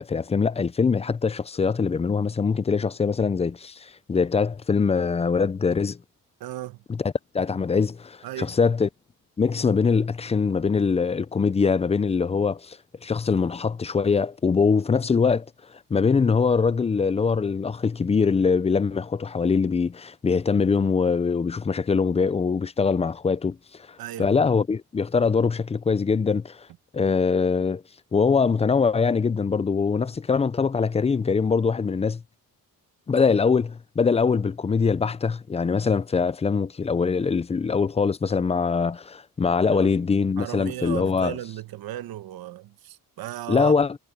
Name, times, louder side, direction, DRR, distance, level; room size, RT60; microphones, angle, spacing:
voice 1, 0.0-6.0 6.9-8.9 9.4-15.5 15.9-23.6 23.9-26.7 26.9-27.8 28.1-32.2 33.1-41.4 43.5-44.0, left 5 dB, 20° left, 0.4 m, -23 dB
voice 2, 6.4-6.8 8.2-8.5 24.0-24.3 39.7-39.9 40.4-43.7, right 13 dB, 80° right, 1.1 m, -35 dB
cardioid pair, 125°, 36 cm